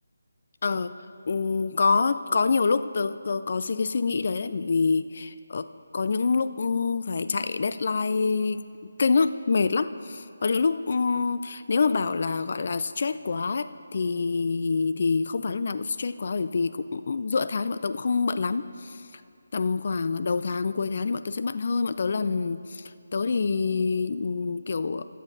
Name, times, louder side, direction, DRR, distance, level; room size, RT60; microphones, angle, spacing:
voice 1, 0.6-0.9 1.3-5.6 5.9-8.6 9.0-19.2 19.5-22.8 23.1-25.1, left 4 dB, 50° left, 12 dB, 0.3 m, -26 dB
11.0 x 7.5 x 5.4 m, 2.4 s
figure-of-eight pair, 155°, 0 cm